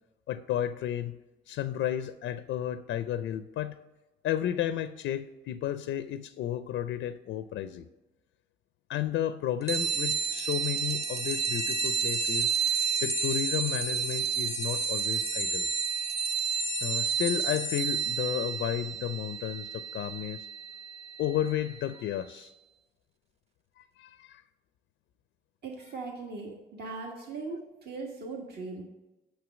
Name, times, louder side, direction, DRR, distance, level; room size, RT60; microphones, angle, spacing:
voice 1, 0.3-1.2 1.5-3.8 4.2-7.9 8.9-12.5 13.0-15.7 16.8-20.5 21.2-22.5 23.8-24.4, left 11 dB, 75° left, 12 dB, 0.4 m, -32 dB
sound 1, 9.7-21.8, right 6 dB, 30° right, 0.9 m, -31 dB
voice 2, 25.6-28.8, right 3 dB, 55° right, 0 dB, 1.5 m, -39 dB
6.4 x 6.3 x 6.1 m, 1.0 s
cardioid pair, 90°, 20 cm